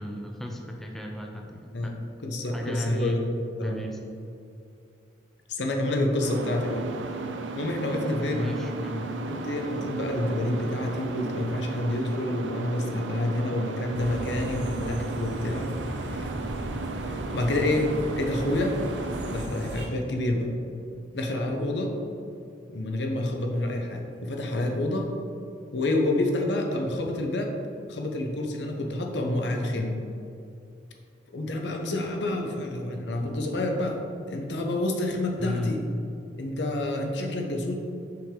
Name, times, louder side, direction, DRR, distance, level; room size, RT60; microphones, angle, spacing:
voice 1, 0.0-1.9 2.5-3.2 3.6-4.0 8.3-9.1 32.5-32.6 35.4-35.8, left 1 dB, ahead, 0 dB, 0.4 m, -33 dB
voice 2, 2.2-3.8 5.5-6.9 7.6-8.5 9.3-15.7 16.0-16.3 17.1-18.8 19.3-20.5 21.1-21.9 22.7-25.1 25.7-27.5 27.9-30.0 31.3-34.0 34.3-35.8 36.4-37.7, left 1 dB, 65° left, 2 dB, 0.8 m, -28 dB
sound 1, 6.2-19.4, right 3 dB, 90° right, 0.5 m, -35 dB
sound 2, 13.9-19.9, equal, 65° right, 0.8 m, -36 dB
5.8 x 5.0 x 3.7 m, 2.6 s
head